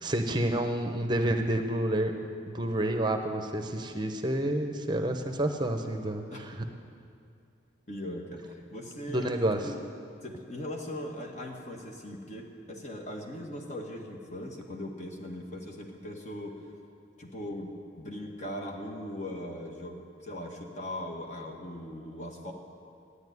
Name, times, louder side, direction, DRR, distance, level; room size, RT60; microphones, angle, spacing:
voice 1, 0.0-6.5 9.1-9.6, right 1 dB, 25° right, 6 dB, 0.8 m, -29 dB
voice 2, 6.3-6.6 7.9-9.3 9.6-9.8 10.2-16.6 17.2-22.5, left 1 dB, 40° left, 1 dB, 1.8 m, -39 dB
13.0 x 9.9 x 9.4 m, 2.4 s
head